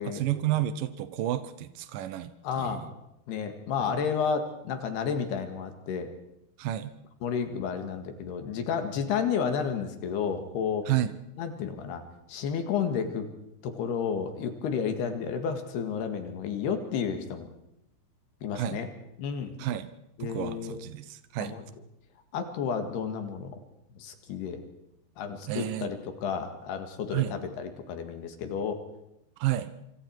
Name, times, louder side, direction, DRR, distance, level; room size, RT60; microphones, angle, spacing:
voice 1, 0.0-2.3 2.6-2.9 3.8-3.9 6.6-6.9 10.9-11.2 18.6-18.8 19.6-19.9 20.2-21.5 25.5-25.9 27.1-27.4 29.4-29.7, right 13 dB, 85° right, 12 dB, 1.9 m, -30 dB
voice 2, 2.4-2.9 3.3-6.1 7.2-10.9 11.4-12.0 12.3-13.3 13.6-17.5 18.4-18.9 19.2-19.5 20.2-20.8 21.4-21.7 22.3-23.6 24.0-24.6 25.2-28.8, left 6 dB, 65° left, 7 dB, 3.6 m, -31 dB
26.5 x 25.5 x 4.7 m, 0.84 s
omnidirectional pair, 5.2 m